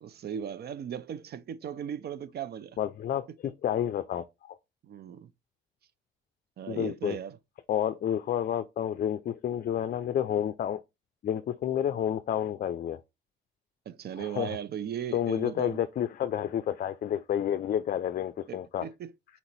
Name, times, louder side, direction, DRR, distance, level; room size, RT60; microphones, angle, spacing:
voice 1, 0.0-2.8 4.8-5.3 6.6-7.4 13.9-15.8 18.5-19.1, right 9 dB, 55° right, 0.5 m, -37 dB
voice 2, 2.8-4.6 6.7-7.2 7.7-10.8 11.2-13.0 14.2-14.6 15.1-18.9, left 10 dB, 50° left, 0.4 m, -30 dB
4.2 x 2.9 x 4.0 m
cardioid pair, 90°, 20 cm